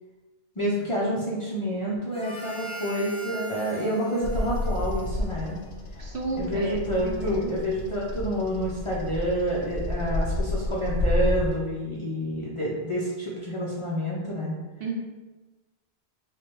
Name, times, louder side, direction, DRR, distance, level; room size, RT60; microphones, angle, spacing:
voice 1, 0.6-5.6 5.9-6.0 6.4-14.6, equal, 40° left, -6 dB, 0.4 m, -28 dB
Harmonica, 2.1-5.9, right 1 dB, 5° left, 0.7 m, -41 dB
Bird vocalization bird call bird song, 4.2-11.5, left 2 dB, 90° left, 0.9 m, -30 dB
voice 2, 6.0-7.5 14.8-14.9, right 3 dB, 65° right, 1 dB, 0.7 m, -33 dB
4.5 x 2.2 x 3.0 m, 1.2 s
omnidirectional pair, 1.1 m